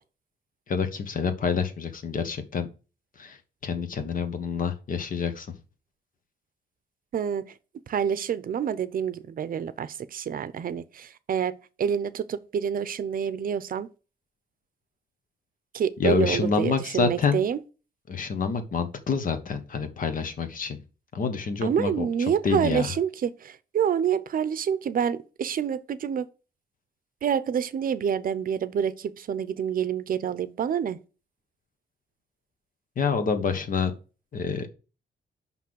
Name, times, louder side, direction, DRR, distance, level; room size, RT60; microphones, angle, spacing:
voice 1, 0.7-2.7 3.2-5.5 16.0-17.4 18.1-20.8 21.1-22.0 22.4-22.9 33.0-33.9 34.3-34.7, left 5 dB, 50° left, 1.3 m, -27 dB
voice 2, 7.1-7.5 7.9-13.9 15.7-17.6 21.6-26.3 27.2-31.0, right 8 dB, 55° right, 0.7 m, -27 dB
5.8 x 5.6 x 6.3 m
cardioid pair, 130°, 17 cm